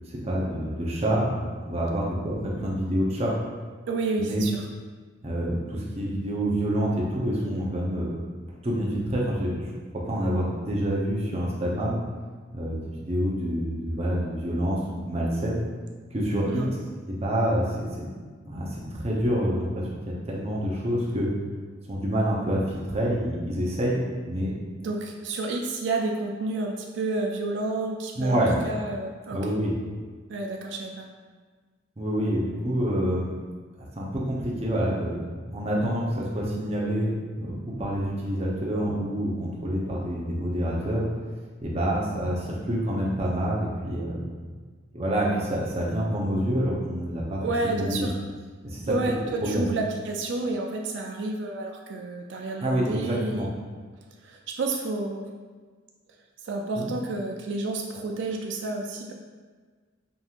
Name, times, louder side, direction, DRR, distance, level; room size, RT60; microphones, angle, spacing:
voice 1, 0.1-3.3 4.2-4.4 5.2-8.1 8.6-9.6 10.0-12.0 12.5-15.6 16.1-16.7 17.1-18.1 18.4-19.9 20.3-21.3 21.9-24.5 28.2-28.5 29.3-29.7 32.0-33.3 33.9-41.0 41.6-44.3 44.9-48.1 48.6-48.9 49.4-49.7 52.6-53.5 56.8-56.9, equal, 30° right, -4 dB, 0.7 m, -27 dB
voice 2, 3.9-4.7 16.4-16.7 24.8-29.5 30.3-31.1 47.3-48.1 48.9-53.5 54.2-55.3 56.4-59.1, right 2 dB, 65° right, 1 dB, 0.4 m, -30 dB
5.3 x 2.9 x 2.4 m, 1.5 s
head